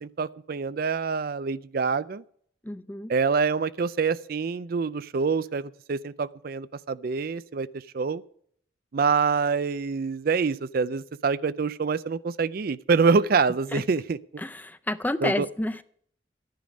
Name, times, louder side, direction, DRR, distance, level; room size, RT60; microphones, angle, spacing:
voice 1, 0.0-2.2 3.1-8.2 8.9-14.2 15.2-15.5, right 5 dB, 50° right, 16 dB, 0.4 m, -26 dB
voice 2, 2.6-3.1 13.7-13.8 14.4-15.8, left 1 dB, 10° left, 13 dB, 0.4 m, -30 dB
14.0 x 10.5 x 5.2 m, 0.63 s
head